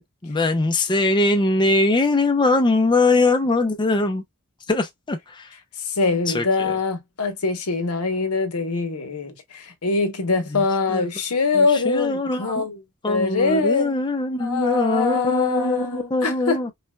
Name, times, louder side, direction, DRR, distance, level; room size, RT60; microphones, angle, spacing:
voice 1, 0.0-4.2 4.7-5.5 6.3-6.7 10.5-10.6 10.9-11.1 11.6-12.6 13.0-16.7, left 2 dB, 20° left, 0.5 m, -22 dB
voice 2, 5.8-14.0 14.4-16.7, left 4 dB, 75° left, 1.0 m, -23 dB
5.4 x 2.2 x 2.2 m
head